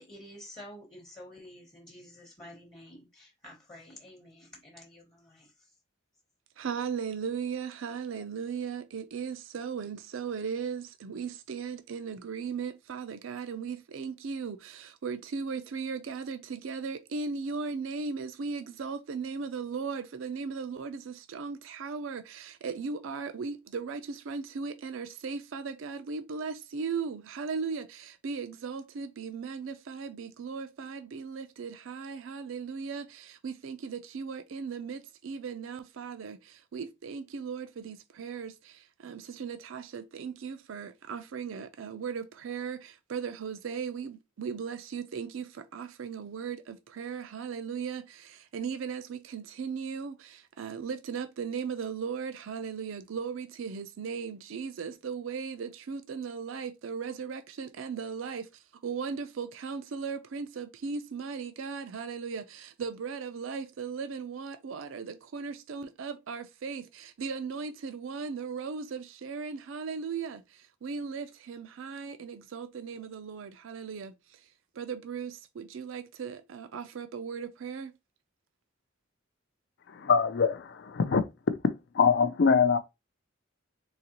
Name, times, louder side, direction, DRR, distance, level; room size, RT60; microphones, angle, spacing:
voice 1, 0.0-5.5, left 1 dB, 20° left, 0.8 m, -50 dB
voice 2, 6.6-74.5 74.7-77.9, right 5 dB, 70° right, 0.4 m, -37 dB
voice 3, 79.9-81.2 81.5-81.6 81.9-82.8, left 5 dB, 55° left, 0.4 m, -23 dB
3.9 x 2.9 x 2.8 m
head